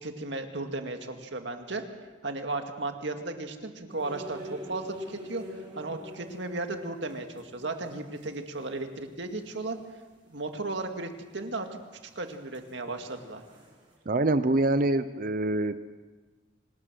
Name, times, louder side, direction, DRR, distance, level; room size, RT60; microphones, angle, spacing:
voice 1, 0.0-1.8 2.2-5.4 5.8-9.8 10.3-11.7 12.2-13.4, right 2 dB, 65° right, 5 dB, 2.1 m, -35 dB
sound 1, 3.9-8.7 9.0-9.1 9.3-9.4 11.3-11.7 12.0-13.9, left 1 dB, 25° right, 7.4 m, -45 dB
voice 2, 14.1-15.8, right 2 dB, 45° right, 12 dB, 0.7 m, -25 dB
26.0 x 19.0 x 6.3 m, 1.3 s
head